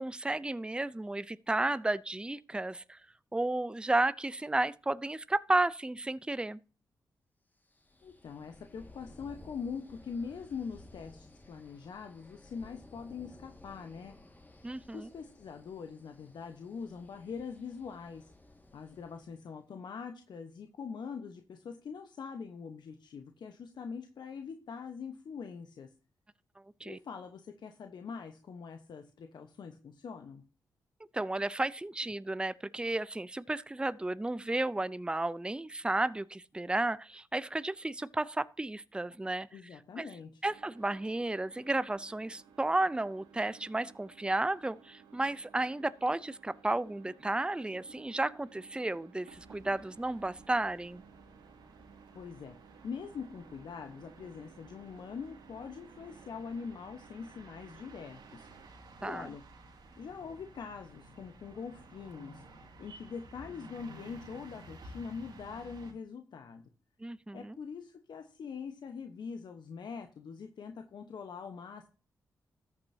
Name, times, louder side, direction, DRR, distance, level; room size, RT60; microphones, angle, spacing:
voice 1, 0.0-3.0 3.3-6.6 14.6-15.1 26.8-27.0 31.1-39.5 40.0-40.1 40.4-51.0 59.0-59.3 67.0-67.6, right 2 dB, 10° right, 0.5 m, -33 dB
sound 1, 7.6-19.4, left 2 dB, 20° left, 1.9 m, -56 dB
voice 2, 8.0-14.2 14.9-18.3 18.7-25.9 26.8-30.4 39.5-40.3 52.1-52.6 52.8-58.5 59.0-59.4 60.0-62.4 62.8-66.6 67.3-71.9, left 6 dB, 65° left, 1.1 m, -43 dB
sound 2, 40.4-58.7, right 6 dB, 90° right, 1.2 m, -58 dB
sound 3, 49.3-65.9, right 2 dB, 75° right, 3.1 m, -54 dB
14.0 x 8.5 x 2.8 m
supercardioid pair, 40°, 8 cm